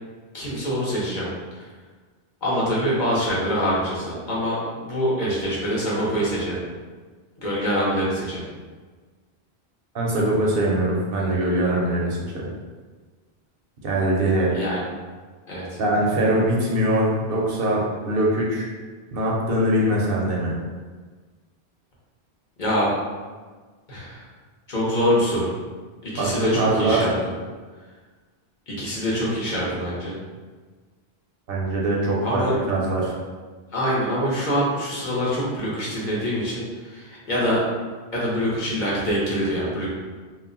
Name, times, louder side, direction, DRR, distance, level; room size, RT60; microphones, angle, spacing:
voice 1, 0.3-1.3 1.5-1.7 2.4-6.6 7.4-8.4 14.5-14.8 15.5-15.8 22.6-22.9 23.9-24.2 24.7-25.5 26.0-27.1 28.7-30.2 32.2-32.6 33.7-37.6 38.1-39.9, equal, 50° left, -6 dB, 0.8 m, -25 dB
voice 2, 9.9-12.2 13.8-14.5 15.8-18.7 19.1-20.5 26.2-27.1 31.5-33.1, right 1 dB, 65° right, -3 dB, 0.8 m, -22 dB
2.3 x 2.0 x 3.6 m, 1.4 s
omnidirectional pair, 1.1 m